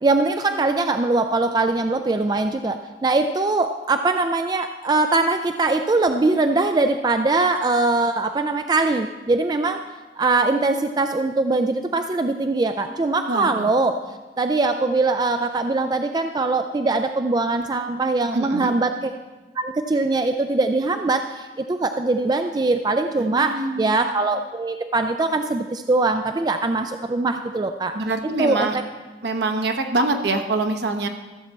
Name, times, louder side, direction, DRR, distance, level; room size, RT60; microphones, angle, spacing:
voice 1, 0.0-9.8 10.2-14.0 14.4-19.1 19.6-28.0 28.2-28.8, right 3 dB, 20° right, 7 dB, 0.3 m, -22 dB
voice 2, 13.3-13.7 18.3-18.7 23.2-23.9 27.9-28.8 29.2-31.1, right 2 dB, 65° right, 6 dB, 0.9 m, -24 dB
14.5 x 7.2 x 4.2 m, 1.2 s
head